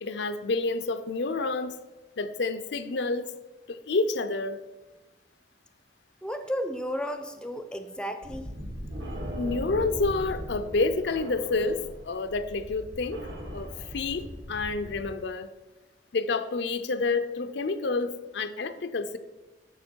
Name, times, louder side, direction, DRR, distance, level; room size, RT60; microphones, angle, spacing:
voice 1, 0.0-1.7 2.2-3.3 3.7-4.6 9.4-13.3 13.5-15.5 16.1-19.2, left 3 dB, 75° left, 10 dB, 0.6 m, -29 dB
voice 2, 6.2-8.5, equal, 5° left, 8 dB, 0.5 m, -33 dB
sound 1, 8.2-15.0, equal, 75° right, 2.1 m, -38 dB
11.0 x 6.5 x 4.5 m, 1.2 s
head